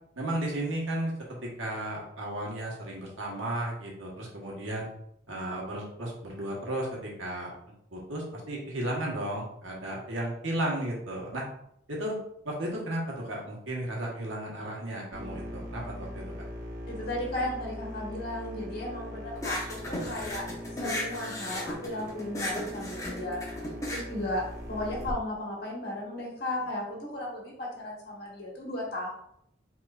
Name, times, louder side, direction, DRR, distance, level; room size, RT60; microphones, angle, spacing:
voice 1, 0.2-4.9 5.3-7.5 7.9-11.4 11.9-12.2 12.4-16.2, right 1 dB, 80° right, -3 dB, 1.5 m, -34 dB
sound 1, 15.1-25.1, equal, 55° right, 0.7 m, -41 dB
voice 2, 16.9-20.4 20.8-23.4 23.9-24.4 24.7-29.1, left 1 dB, 50° left, -3 dB, 1.6 m, -35 dB
sound 2, 19.3-25.1, left 1 dB, 15° left, 0.8 m, -36 dB
5.3 x 3.6 x 2.6 m, 0.73 s
head